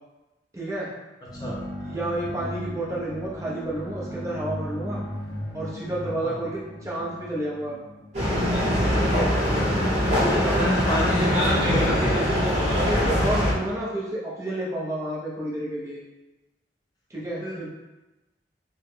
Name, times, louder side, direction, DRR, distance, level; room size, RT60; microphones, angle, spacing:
voice 1, 0.5-0.9 1.5-1.6 1.8-5.0 5.5-7.8 9.0-9.4 10.2-10.7 12.8-16.0 17.1-17.7, right 1 dB, 20° right, -6 dB, 0.7 m, -30 dB
sound 1, 1.3-9.0, equal, 60° left, 0.7 m, -37 dB
sound 2, 8.1-13.5, equal, 40° right, 1.1 m, -22 dB
voice 2, 10.1-12.3 17.4-17.7, equal, 20° left, -5 dB, 0.4 m, -29 dB
3.1 x 2.2 x 3.3 m, 1.1 s
head